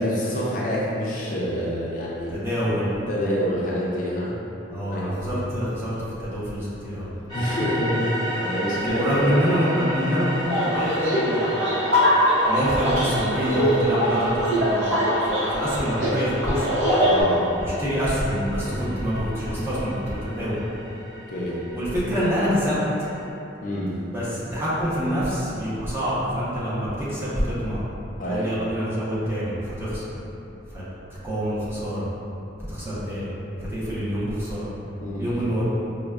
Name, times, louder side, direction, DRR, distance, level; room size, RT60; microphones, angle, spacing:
voice 1, 0.0-2.3 3.1-4.4 4.8-5.1 7.3-9.5 17.0-17.4 21.3-21.6 23.6-24.0 28.2-28.5 35.0-35.4, equal, 45° left, -6 dB, 0.4 m, -27 dB
voice 2, 2.3-2.9 4.7-7.1 8.7-11.8 12.5-16.7 17.6-20.6 21.7-22.8 24.1-27.8 28.2-30.1 30.7-30.8 31.1-32.0 32.7-33.3 33.6-34.7 35.2-35.6, equal, 15° right, -10 dB, 0.7 m, -26 dB
sound 1, 7.3-23.2, equal, 20° left, 0.8 m, -35 dB
sound 2, 10.5-17.2, equal, 75° right, 0.8 m, -22 dB
4.8 x 2.1 x 2.3 m, 2.9 s
head